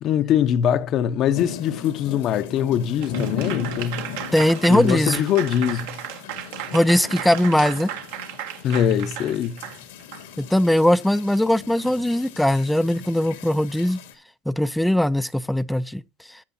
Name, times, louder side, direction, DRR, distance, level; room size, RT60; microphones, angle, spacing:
voice 1, 0.0-4.1 4.7-6.0 8.6-9.6, left 9 dB, 45° left, 0.7 m, -22 dB
sound 1, 1.3-14.1, left 7 dB, 90° left, 2.3 m, -37 dB
Applause / Crowd, 3.0-10.2, right 10 dB, 80° right, 1.6 m, -34 dB
voice 2, 4.3-5.2 6.7-7.9 10.4-14.0 14.5-16.0, left 1 dB, 5° left, 0.4 m, -20 dB
14.5 x 8.1 x 2.7 m
supercardioid pair, 125°, 0 cm